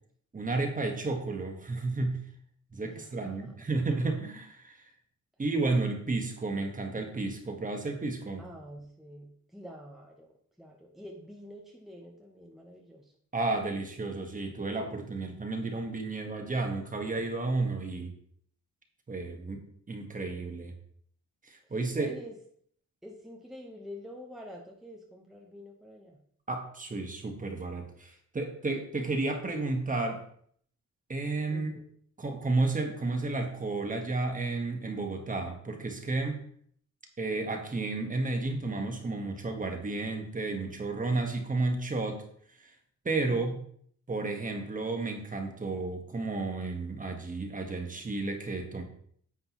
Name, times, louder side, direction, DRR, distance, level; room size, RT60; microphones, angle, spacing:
voice 1, 0.3-2.2 2.7-4.8 5.4-8.4 13.3-18.1 19.1-20.7 21.4-22.1 26.5-30.2 31.1-31.7 32.2-36.4 37.2-42.2 42.6-42.7 43.0-43.6 44.1-48.8, right 3 dB, 25° right, 3 dB, 1.4 m, -32 dB
voice 2, 2.8-3.6 8.4-10.3 10.6-13.1 21.9-22.3 23.0-26.2 31.5-31.8 43.2-43.6, equal, ahead, -1 dB, 1.0 m, -47 dB
9.8 x 7.8 x 3.0 m, 0.63 s
wide cardioid pair, 140°, 32 cm